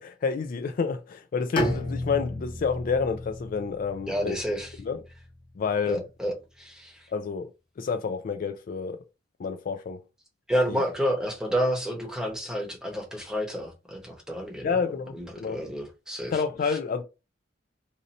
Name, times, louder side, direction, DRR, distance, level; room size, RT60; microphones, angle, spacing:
voice 1, 0.0-4.4 4.8-5.0 5.6-6.0 7.1-7.5 7.8-9.0 9.4-10.0 10.7-10.8 14.6-15.6 16.3-17.0, left 5 dB, 45° left, 0.3 m, -29 dB
Bowed string instrument, 1.6-5.5, left 1 dB, 25° left, 0.9 m, -33 dB
voice 2, 4.1-4.7 5.8-7.0 10.5-14.8 15.1-16.4 16.7-16.8, equal, 5° right, 0.9 m, -30 dB
2.7 x 2.6 x 4.0 m
head